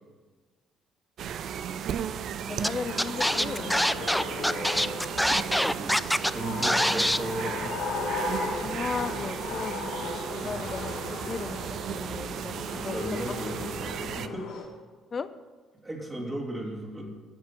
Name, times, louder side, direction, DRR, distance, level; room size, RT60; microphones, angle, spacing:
sound 1, 1.2-14.3, right 8 dB, 55° right, 0.5 m, -35 dB
voice 1, 2.5-3.8 8.6-13.4 15.1-15.3, left 5 dB, 35° left, 13 dB, 0.7 m, -36 dB
Scratching (performance technique), 2.6-2.7 3.0-6.3 6.6-7.2, equal, 5° left, 0.4 m, -24 dB
sound 2, 2.9-14.6, left 4 dB, 65° left, 1.7 m, -36 dB
voice 2, 4.8-7.8 10.4-10.6 12.7-14.5 15.8-17.1, right 1 dB, 25° right, -3 dB, 3.1 m, -36 dB
14.0 x 6.7 x 5.9 m, 1.4 s
figure-of-eight pair, 50°, 0 cm